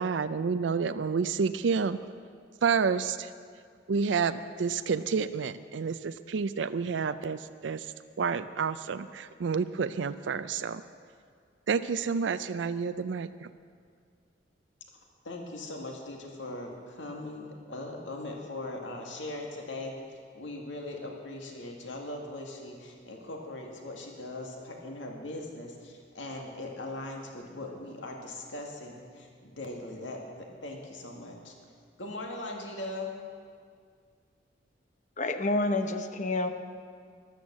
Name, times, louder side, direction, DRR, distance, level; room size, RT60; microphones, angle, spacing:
voice 1, 0.0-2.0 2.6-3.3 3.9-7.9 8.2-10.8 11.7-13.5, right 5 dB, 75° right, 12 dB, 0.4 m, -29 dB
voice 2, 15.2-31.5 32.0-33.1, left 2 dB, 90° left, 1 dB, 2.1 m, -40 dB
voice 3, 35.2-36.5, left 2 dB, 40° left, 8 dB, 0.9 m, -28 dB
13.5 x 11.5 x 7.5 m, 2.1 s
head